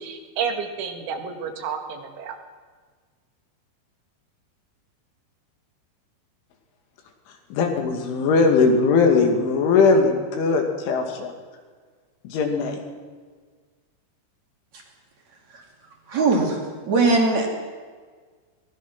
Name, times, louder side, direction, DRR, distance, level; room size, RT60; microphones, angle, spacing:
voice 1, 0.0-2.4, right 6 dB, 80° right, 5 dB, 4.3 m, -30 dB
voice 2, 7.5-11.3 12.2-12.8, left 4 dB, 80° left, 3 dB, 4.9 m, -19 dB
voice 3, 16.1-17.5, right 3 dB, 45° right, 1 dB, 3.6 m, -20 dB
23.0 x 19.0 x 6.1 m, 1.5 s
omnidirectional pair, 5.4 m